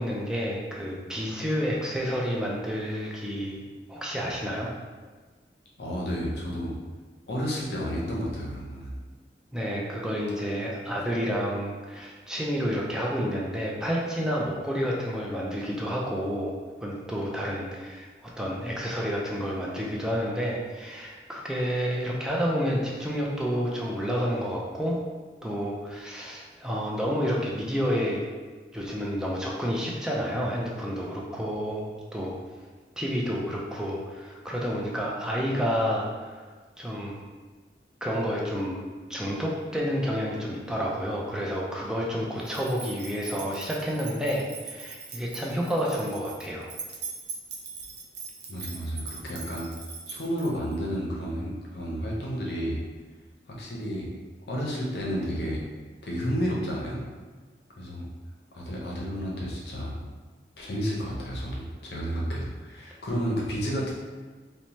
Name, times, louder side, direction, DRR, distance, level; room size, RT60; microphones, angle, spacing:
voice 1, 0.0-3.6 3.9-4.7 9.5-25.0 25.4-28.2 28.7-32.3 33.0-36.5 36.8-37.2 38.0-46.7, equal, 5° right, -3 dB, 0.3 m, -30 dB
voice 2, 5.8-6.7 7.3-8.9 48.5-49.7 50.1-52.8 53.5-54.1 54.5-55.6 56.0-57.0 57.8-58.1 58.5-60.0 60.6-63.9, equal, 65° left, -3 dB, 0.6 m, -31 dB
sound 1, 42.4-50.8, right 5 dB, 70° right, 0.5 m, -41 dB
2.7 x 2.1 x 3.0 m, 1.4 s
head